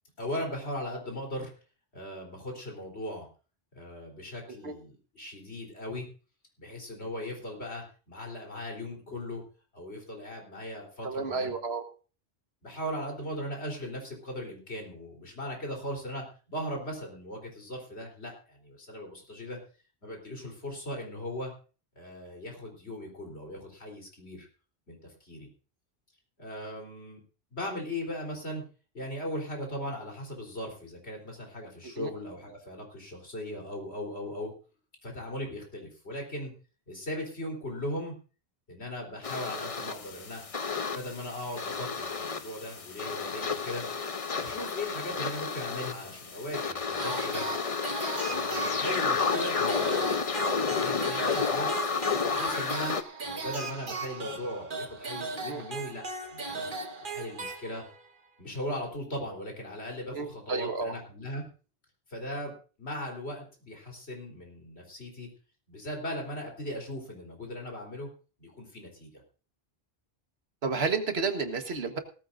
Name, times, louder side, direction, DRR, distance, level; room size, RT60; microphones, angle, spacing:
voice 1, 0.2-1.5 1.9-3.3 3.7-6.1 6.6-9.4 9.7-11.5 12.6-19.6 20.0-21.5 22.0-24.5 24.9-25.5 26.4-27.2 27.5-28.6 28.9-34.5 35.0-36.5 36.9-38.1 38.7-40.4 40.9-43.8 44.4-47.5 48.2-50.2 50.6-51.7 52.2-52.9 53.2-56.7 57.0-57.8 58.4-61.5 62.1-65.3 65.7-68.1 68.4-69.1, left 1 dB, 90° left, 0 dB, 4.1 m, -38 dB
voice 2, 11.0-11.8 32.0-32.1 55.5-55.6 60.1-60.9 70.6-72.0, right 4 dB, 80° right, 7 dB, 1.7 m, -31 dB
sound 1, 39.2-53.0, left 5 dB, 35° left, 0.8 m, -31 dB
sound 2, 47.0-58.1, right 3 dB, 55° right, 1.6 m, -38 dB
18.0 x 14.0 x 2.6 m, 0.36 s
omnidirectional pair, 1.1 m